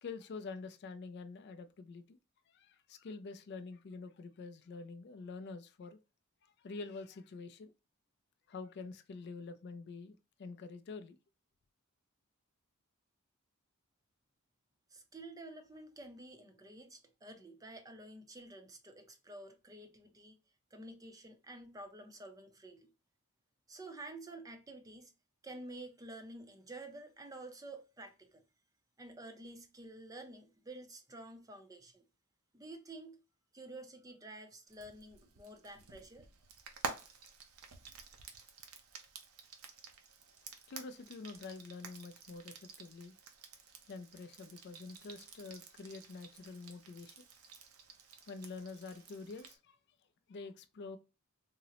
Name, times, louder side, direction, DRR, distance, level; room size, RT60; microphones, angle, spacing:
voice 1, 0.0-2.2 2.5-6.0 6.4-7.7 8.5-11.2 40.7-43.1 43.9-47.3 48.3-49.8 50.3-51.0, left 4 dB, 50° left, 0.3 m, -47 dB
voice 2, 14.9-20.4 20.7-22.9 23.7-25.1 25.4-28.4 29.0-32.0 32.5-33.2 33.5-36.3, right 2 dB, 15° right, 0.5 m, -50 dB
Frying (food), 34.7-49.6, right 5 dB, 85° right, 0.6 m, -50 dB
3.7 x 2.0 x 2.8 m
head